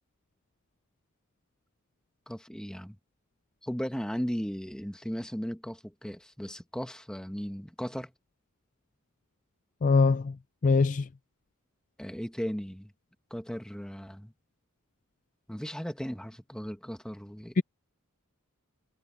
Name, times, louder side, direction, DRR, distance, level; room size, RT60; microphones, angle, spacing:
voice 1, 2.3-3.0 3.6-8.1 12.0-12.9 13.3-14.3 15.5-17.6, equal, 5° left, 1.4 m, -36 dB
voice 2, 9.8-10.3 10.6-11.1 17.6-17.7, left 4 dB, 40° left, 0.4 m, -22 dB
head